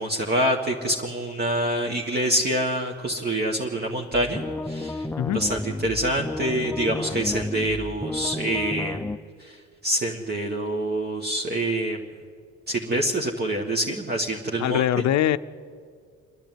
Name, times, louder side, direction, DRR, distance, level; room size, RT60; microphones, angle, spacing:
voice 1, 0.0-5.1 5.3-9.0 9.4-12.0 12.7-14.8, right 1 dB, 35° right, 0 dB, 1.7 m, -26 dB
sound 1, 4.1-9.2, left 2 dB, 5° left, 0.5 m, -32 dB
voice 2, 14.6-15.4, left 11 dB, 65° left, 14 dB, 0.7 m, -22 dB
27.5 x 10.5 x 9.2 m, 2.1 s
cardioid pair, 90°, 30 cm